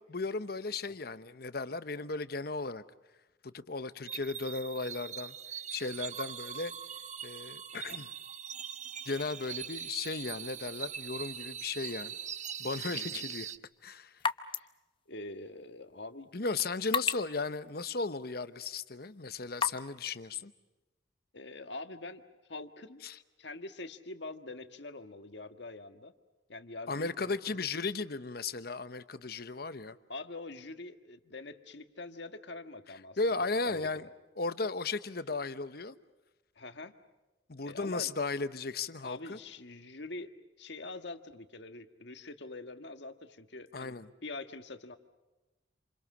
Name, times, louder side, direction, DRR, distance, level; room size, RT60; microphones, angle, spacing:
voice 1, 0.1-2.8 3.4-5.3 5.7-6.7 7.2-8.1 9.0-12.1 12.6-13.5 13.8-14.2 16.3-20.5 23.0-23.2 26.9-30.0 33.2-34.1 34.4-36.0 37.5-39.4 43.7-44.1, left 3 dB, 55° left, 1.0 m, -35 dB
sound 1, 4.0-13.6, right 8 dB, 40° right, 0.8 m, -42 dB
sound 2, 13.2-20.0, left 5 dB, 30° left, 0.8 m, -40 dB
voice 2, 15.1-16.3 21.3-22.2 22.5-23.0 23.4-26.1 26.5-27.6 30.1-33.9 36.5-36.9 37.6-38.1 39.0-40.3 40.6-44.0 44.2-45.0, left 2 dB, 70° left, 1.6 m, -44 dB
28.5 x 27.5 x 6.3 m
head